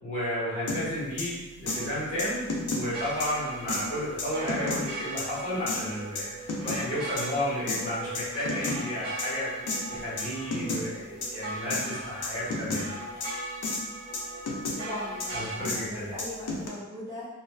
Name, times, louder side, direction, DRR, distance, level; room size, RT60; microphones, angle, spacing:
voice 1, 0.0-6.3 6.6-12.9 15.3-16.1, equal, 35° left, -11 dB, 1.3 m, -32 dB
sound 1, 0.7-0.8 1.2-1.3 1.7-1.8 2.2-2.8 3.2-3.3 3.7-3.8 4.2-4.8 5.2-5.3 5.7-5.8 6.2-6.8 7.2-7.3 7.7-7.8 8.1-8.8 9.2-9.3 9.7-9.8 10.2-10.3 10.5-10.8 11.2-11.3 11.7-11.8 12.2-12.8 13.2-13.3 13.6-13.8 14.1-14.8 15.2-15.3 15.6-15.8 16.2-16.7, left 3 dB, 80° left, 0.5 m, -31 dB
sound 2, 1.7-15.6, right 2 dB, 40° right, 1.3 m, -40 dB
voice 2, 14.7-17.3, left 1 dB, 15° right, -11 dB, 0.5 m, -39 dB
2.5 x 2.3 x 2.2 m, 1.1 s
head